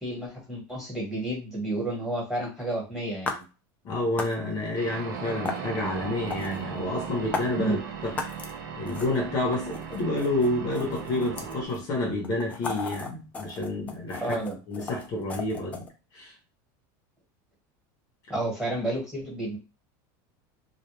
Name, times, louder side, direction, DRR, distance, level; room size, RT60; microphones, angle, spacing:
voice 1, 0.0-3.4 7.6-7.8 14.2-14.6 18.3-19.6, right 1 dB, 5° right, 1.2 m, -31 dB
sound 1, 3.3-3.4 4.2-4.3 5.5-5.6 6.3-6.6 7.3-7.5 8.2-8.5 8.9-9.2 9.5-11.8 12.2-15.9, left 4 dB, 15° left, 0.3 m, -35 dB
voice 2, 3.8-7.8 8.0-14.4 14.7-15.9 16.1-16.3, left 2 dB, 35° left, 0.7 m, -29 dB
sound 2, 4.8-11.7, right 7 dB, 90° right, 0.6 m, -37 dB
2.2 x 2.1 x 3.0 m
supercardioid pair, 165°, 11 cm